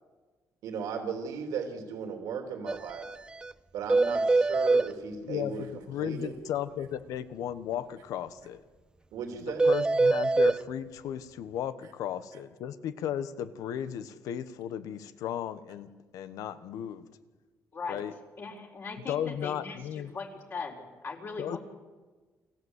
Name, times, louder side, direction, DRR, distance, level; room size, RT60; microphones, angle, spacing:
voice 1, 0.6-3.1 3.7-6.3 9.1-9.6, right 6 dB, 90° right, 4 dB, 3.4 m, -36 dB
sound 1, 2.7-2.8 3.0-3.1 3.4-3.5 3.9-4.9 9.6-10.6, right 3 dB, 15° right, 0.6 m, -23 dB
voice 2, 5.2-8.6 9.4-17.1 17.9-18.1 19.1-20.1 21.4-21.6, left 10 dB, 90° left, 12 dB, 1.2 m, -35 dB
voice 3, 17.7-18.0 18.4-19.8 20.1-21.6, left 4 dB, 45° left, 0 dB, 4.3 m, -39 dB
28.5 x 14.5 x 8.2 m, 1.3 s
cardioid pair, 125°, 6 cm